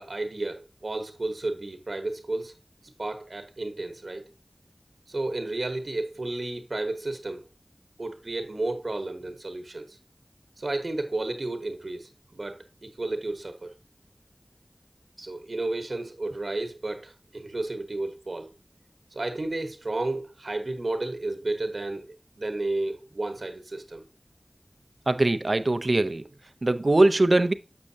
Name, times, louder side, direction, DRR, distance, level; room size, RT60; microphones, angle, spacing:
voice 1, 0.0-2.5 3.0-4.3 5.1-7.5 8.0-10.0 10.6-13.7 15.2-18.5 19.1-22.1 22.4-24.0, right 2 dB, 85° right, 1.0 m, -32 dB
voice 2, 25.1-26.3 26.6-27.5, right 2 dB, 60° right, 0.5 m, -21 dB
7.4 x 6.3 x 2.7 m
wide cardioid pair, 50°, 0 cm